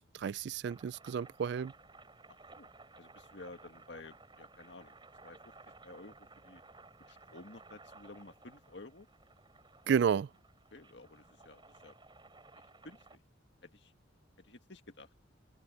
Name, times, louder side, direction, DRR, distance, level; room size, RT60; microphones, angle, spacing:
voice 1, 0.0-1.7 9.9-10.3, right 7 dB, 60° right, 0.3 m, -31 dB
sound 1, 0.7-13.2, right 3 dB, 25° right, 4.7 m, -58 dB
voice 2, 2.3-2.7 3.0-5.0 5.2-5.5 5.8-6.6 7.1-9.1 10.7-12.0 12.6-13.2 13.6-13.9 14.4-15.1, left 2 dB, 60° left, 2.0 m, -53 dB
head